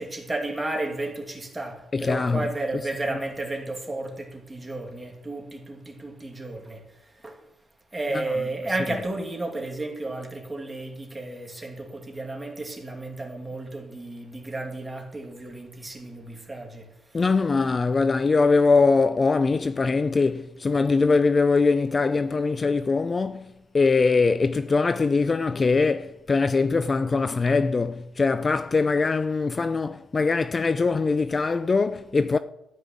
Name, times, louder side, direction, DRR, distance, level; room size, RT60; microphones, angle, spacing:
voice 1, 0.0-7.5 7.9-17.3, right 2 dB, 15° right, 2.6 m, -33 dB
voice 2, 1.9-2.4 17.1-32.4, left 4 dB, 30° left, 0.4 m, -22 dB
13.0 x 5.5 x 8.7 m
cardioid pair, 90°, 0 cm